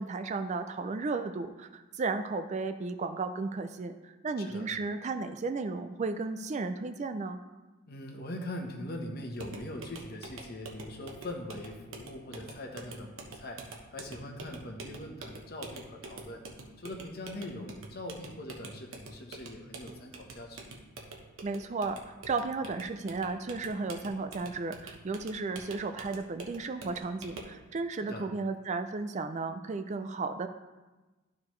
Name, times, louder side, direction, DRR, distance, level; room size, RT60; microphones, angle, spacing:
voice 1, 0.0-7.4 21.4-30.5, right 3 dB, 30° right, 8 dB, 0.3 m, -34 dB
voice 2, 4.4-4.7 7.9-13.6 13.9-16.4 16.8-20.8 28.0-28.3, left 1 dB, 45° left, 2 dB, 1.0 m, -42 dB
sound 1, 9.3-27.6, right 3 dB, 65° right, 1.0 m, -47 dB
12.5 x 4.8 x 3.1 m, 1.2 s
head